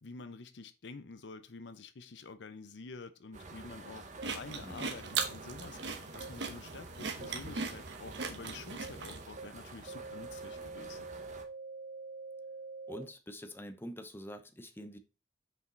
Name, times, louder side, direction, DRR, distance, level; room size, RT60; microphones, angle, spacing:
voice 1, 0.0-11.1, left 3 dB, 85° left, 0.7 m, -48 dB
sound 1, 3.3-11.4, right 3 dB, 45° right, 1.1 m, -50 dB
sound 2, 4.2-4.3 5.2-5.3 6.2-6.3 7.2-7.3 8.2-8.3 8.8-8.9 9.4-9.5 9.9-13.0, right 4 dB, 60° right, 2.7 m, -45 dB
sound 3, 4.2-9.2, right 5 dB, 85° right, 1.1 m, -39 dB
voice 2, 12.9-15.0, equal, 15° left, 0.7 m, -45 dB
5.8 x 5.1 x 3.9 m
head